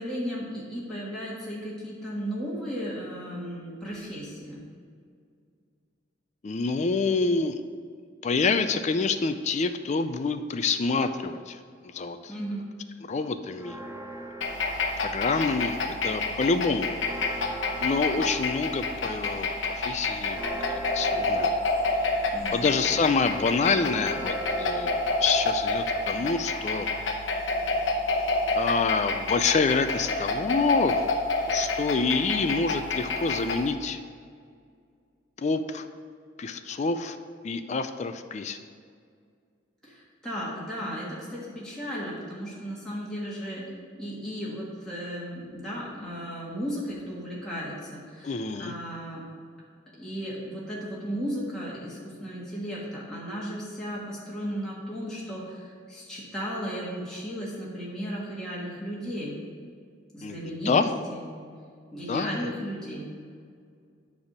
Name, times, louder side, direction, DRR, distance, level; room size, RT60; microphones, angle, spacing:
voice 1, 0.0-4.6 12.3-12.6 18.0-18.2 22.3-22.6 39.8-49.2 50.0-59.4 60.1-60.7 61.1-61.2 61.9-63.1, equal, 5° left, -8 dB, 1.5 m, -35 dB
voice 2, 6.4-7.6 8.2-11.6 11.8-12.3 13.0-13.8 15.0-16.9 17.8-20.4 20.6-21.5 22.5-26.9 28.5-31.0 31.5-34.0 35.4-35.9 36.4-37.2 37.4-38.6 48.2-48.7 60.2-60.9 62.1-62.5, left 4 dB, 40° left, 9 dB, 0.4 m, -27 dB
sound 1, 13.6-15.9 16.3-26.8, right 1 dB, 15° right, 0.6 m, -42 dB
sound 2, 14.4-33.7, left 2 dB, 80° left, 0.9 m, -29 dB
9.5 x 3.5 x 6.5 m, 2.1 s
head